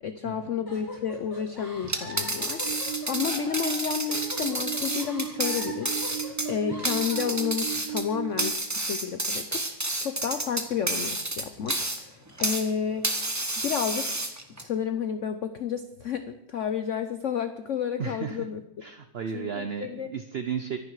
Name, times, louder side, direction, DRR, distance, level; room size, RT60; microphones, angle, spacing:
voice 1, 0.0-9.6 10.0-13.1 13.6-14.1 14.6-18.6 19.3-20.1, left 8 dB, 60° left, 10 dB, 0.8 m, -31 dB
sound 1, 0.7-7.5, left 2 dB, 10° left, 5.8 m, -42 dB
sound 2, 1.8-12.7 13.0-14.6, right 1 dB, 10° right, 1.0 m, -30 dB
sound 3, 2.6-8.5, right 12 dB, 75° right, 1.4 m, -36 dB
voice 2, 18.0-18.5 18.8-20.8, right 7 dB, 55° right, 8 dB, 0.7 m, -33 dB
24.0 x 10.5 x 4.8 m, 0.86 s
omnidirectional pair, 2.0 m